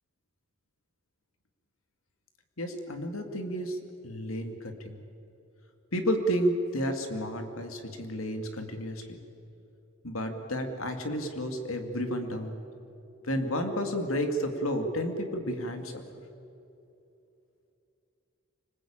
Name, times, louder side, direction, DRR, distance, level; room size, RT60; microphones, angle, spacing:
voice 1, 2.6-3.8 4.0-5.0 5.9-9.2 10.0-12.6 13.2-16.2, equal, 80° left, 5 dB, 2.5 m, -31 dB
25.5 x 20.0 x 8.9 m, 2.8 s
head